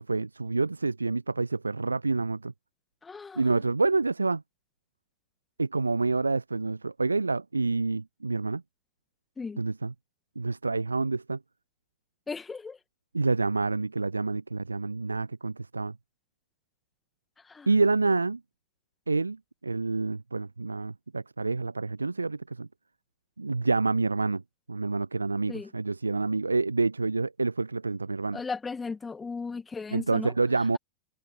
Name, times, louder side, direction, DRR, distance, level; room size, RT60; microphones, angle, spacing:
voice 1, 0.0-2.5 3.4-4.4 5.6-8.6 9.6-9.9 10.4-11.4 13.1-15.9 17.7-18.4 19.1-22.7 23.4-24.4 24.7-28.4 29.9-30.8, right 3 dB, 80° right, 0.7 m, -28 dB
voice 2, 3.0-3.4 9.4-9.6 12.3-12.8 17.5-17.7 25.5-25.7 28.3-30.3, left 4 dB, 15° left, 1.9 m, -36 dB
figure-of-eight pair, 90°, 0 cm